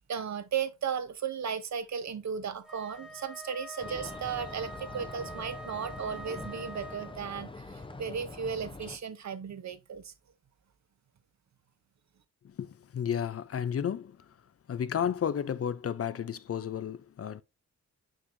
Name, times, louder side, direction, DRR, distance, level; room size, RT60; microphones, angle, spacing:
voice 1, 0.1-10.1, right 7 dB, 65° right, 0.9 m, -35 dB
Wind instrument woodwind instrument, 2.6-7.3, right 1 dB, ahead, 1.5 m, -45 dB
sound 1, 3.8-9.0, left 3 dB, 15° left, 0.7 m, -44 dB
voice 2, 12.4-14.2 14.7-17.4, left 8 dB, 50° left, 0.5 m, -32 dB
6.3 x 6.2 x 2.6 m
wide cardioid pair, 100°, 30 cm